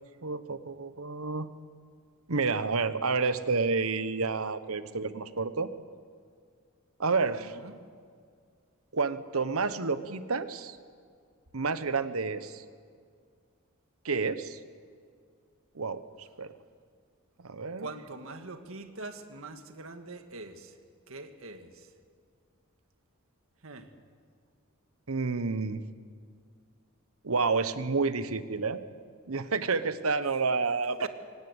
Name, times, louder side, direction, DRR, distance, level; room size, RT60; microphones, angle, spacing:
voice 1, 0.2-1.5 2.3-5.7 7.0-7.6 8.9-10.8 11.5-12.6 14.0-14.6 15.7-16.5 17.4-17.9 25.1-25.9 27.2-28.8 29.3-31.1, right 4 dB, 90° right, 13 dB, 1.1 m, -30 dB
voice 2, 7.4-7.7 17.8-20.7 21.1-21.9 23.6-23.9 31.0-31.1, right 3 dB, 70° right, 8 dB, 1.9 m, -43 dB
24.5 x 19.0 x 8.1 m, 2.1 s
head